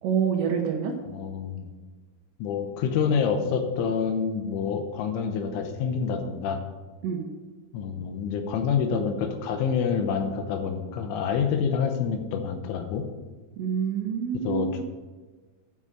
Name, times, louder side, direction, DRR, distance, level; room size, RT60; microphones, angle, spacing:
voice 1, 0.0-0.9 7.0-7.3 13.6-14.8, right 7 dB, 70° right, 2 dB, 2.9 m, -27 dB
voice 2, 1.1-1.7 2.4-6.6 7.7-13.1 14.4-14.8, left 6 dB, 80° left, 6 dB, 3.3 m, -27 dB
9.3 x 6.1 x 8.1 m, 1.3 s
omnidirectional pair, 5.9 m